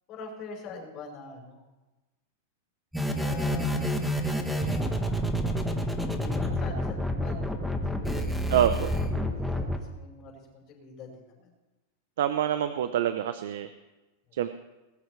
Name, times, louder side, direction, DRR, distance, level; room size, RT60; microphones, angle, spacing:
voice 1, 0.1-1.6 3.1-5.2 6.0-7.3 7.9-9.0 9.4-11.5, left 4 dB, 30° left, -4 dB, 5.1 m, -44 dB
sound 1, 2.9-9.8, equal, ahead, 1.2 m, -28 dB
voice 2, 8.5-8.9 12.2-13.7 14.4-14.5, right 10 dB, 75° right, 10 dB, 0.8 m, -26 dB
20.0 x 14.0 x 3.3 m, 1.1 s
supercardioid pair, 160°, 0 cm